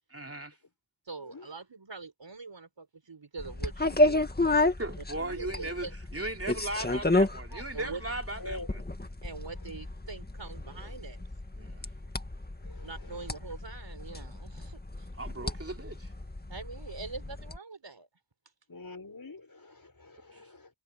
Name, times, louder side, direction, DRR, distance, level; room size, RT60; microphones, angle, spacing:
voice 1, 0.1-0.5 4.8-5.9 6.1-8.8 11.6-11.9 15.2-16.1 20.3-20.4, right 1 dB, 30° right, 3.2 m, -37 dB
voice 2, 1.1-4.2 5.0-5.9 7.5-8.0 9.2-11.2 12.8-15.1 16.5-18.1, right 4 dB, 65° right, 5.0 m, -43 dB
sound 1, 3.4-17.6, left 2 dB, 20° left, 1.8 m, -31 dB
voice 3, 18.7-20.7, left 2 dB, 45° left, 6.2 m, -45 dB
wide cardioid pair, 55°, 46 cm